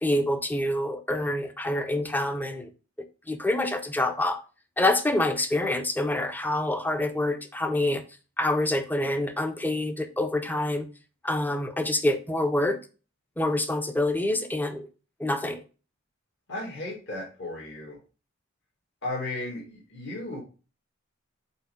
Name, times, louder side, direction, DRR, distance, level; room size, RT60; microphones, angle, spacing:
voice 1, 0.0-2.7 3.3-4.4 4.8-8.0 8.4-10.9 11.2-12.8 13.4-14.9 15.2-15.6, left 1 dB, 10° left, 0.6 m, -26 dB
voice 2, 16.5-18.0 19.0-20.4, left 2 dB, 60° left, 2.2 m, -35 dB
5.5 x 4.4 x 5.1 m
head